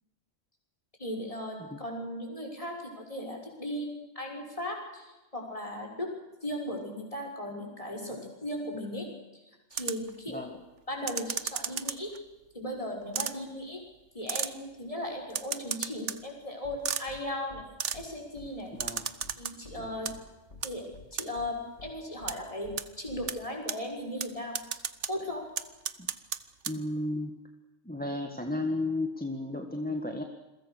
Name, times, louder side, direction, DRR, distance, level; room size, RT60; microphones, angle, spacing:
voice 1, 1.0-6.1 6.4-9.1 9.3-9.4 9.7-10.4 10.9-12.1 12.5-13.8 14.1-17.7 17.9-18.7 19.4-20.1 20.6-24.6 25.1-25.5, left 1 dB, 25° left, 2 dB, 6.2 m, -37 dB
sound 1, 9.7-10.1 11.1-12.2 13.1-13.3 14.3-14.5 15.3-16.2 16.9-17.0 17.8-18.0 18.8-19.5 19.9-20.1 20.6-20.7 21.2-21.3 22.3-22.4 22.8-22.9 23.3-23.4 23.7-23.8 24.2-24.3 24.5-25.1 25.6-26.4 26.6-26.7, right 7 dB, 60° right, 1.3 m, -33 dB
sound 2, 16.6-16.8 17.1-17.2 17.5-17.6 17.9-18.1 18.4-18.5 18.8-18.9 19.2-19.3 19.6-20.2 20.5-20.6 20.9-21.1 21.4-21.5 21.8-21.9 22.2-22.3 22.6-22.8 23.1-23.3, left 4 dB, 60° left, 2.0 m, -49 dB
voice 2, 18.7-19.1 19.8-20.0 26.0-26.1 26.7-27.3 27.8-30.2, left 2 dB, 5° left, 4 dB, 1.7 m, -33 dB
28.5 x 22.5 x 6.6 m, 1.1 s
omnidirectional pair, 1.4 m